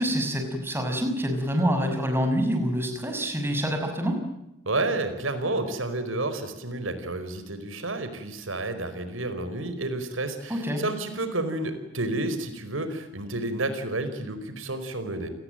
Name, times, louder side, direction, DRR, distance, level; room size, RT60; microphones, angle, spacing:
voice 1, 0.0-4.2 10.5-10.8, equal, 10° right, 5 dB, 6.1 m, -26 dB
voice 2, 4.6-15.3, right 2 dB, 90° right, 10 dB, 4.9 m, -30 dB
30.0 x 20.5 x 9.1 m, 0.91 s
head